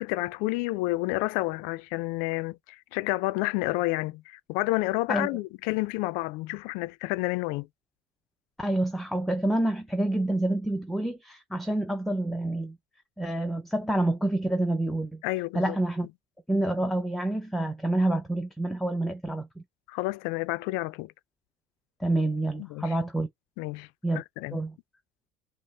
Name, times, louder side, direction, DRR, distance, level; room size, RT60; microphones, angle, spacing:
voice 1, 0.0-7.7 15.2-15.8 19.9-21.1 22.6-23.0 23.6-23.9 24.1-24.6, left 20 dB, 70° left, 0.4 m, -30 dB
voice 2, 8.6-12.8 13.2-15.2 15.5-16.1 16.5-19.6 22.0-23.3 24.0-24.2 24.5-24.7, right 1 dB, ahead, 0.6 m, -28 dB
5.3 x 2.1 x 3.8 m
supercardioid pair, 120°, 15 cm